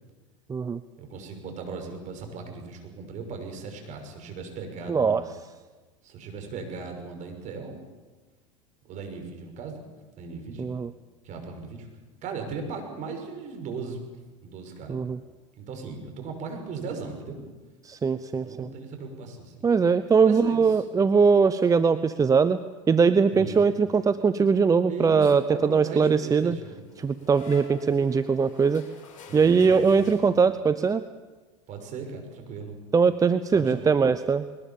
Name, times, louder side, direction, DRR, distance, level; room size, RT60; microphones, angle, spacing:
voice 1, 1.0-5.2 6.0-7.8 8.8-9.9 10.2-10.7 11.2-11.9 12.2-14.0 14.4-15.1 15.6-17.4 18.4-19.7 20.3-20.8 23.3-23.7 24.9-26.8 29.3-30.4 31.7-32.8 33.5-34.0, right 4 dB, 45° right, 4 dB, 6.0 m, -38 dB
voice 2, 4.9-5.2 10.6-10.9 14.9-15.2 17.8-18.7 19.6-22.6 22.9-26.6 27.0-28.8 29.3-31.0 32.9-34.5, right 5 dB, 20° right, 12 dB, 0.8 m, -21 dB
sound 1, 26.8-30.7, left 4 dB, 50° left, 7.6 m, -48 dB
21.5 x 19.5 x 7.2 m, 1.3 s
hypercardioid pair, 90°, 17 cm